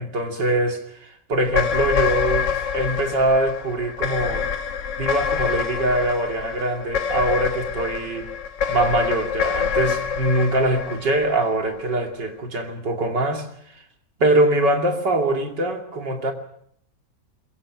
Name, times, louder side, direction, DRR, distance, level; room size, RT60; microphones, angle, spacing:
voice 1, 0.0-4.5 5.0-8.3 8.7-13.5 14.2-16.3, right 1 dB, 80° right, 3 dB, 3.3 m, -23 dB
sound 1, 1.4-11.9, left 7 dB, 90° left, 1.9 m, -26 dB
22.5 x 22.0 x 6.1 m, 0.68 s
omnidirectional pair, 1.9 m